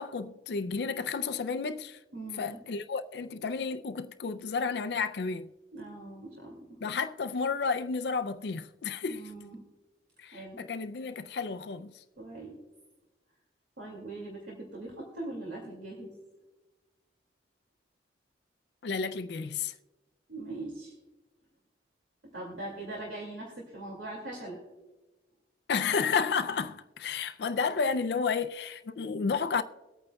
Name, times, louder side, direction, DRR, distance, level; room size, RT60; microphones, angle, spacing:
voice 1, 0.0-2.0 2.4-5.5 6.8-9.3 10.2-11.9 18.8-19.7 25.7-29.6, left 5 dB, 65° left, 0.4 m, -31 dB
voice 2, 2.1-2.6 5.7-6.8 9.1-9.6 10.3-10.7 12.2-12.6 13.8-16.1 20.3-20.9 22.2-24.6, right 2 dB, 85° right, 2.2 m, -41 dB
23.0 x 8.8 x 2.3 m
head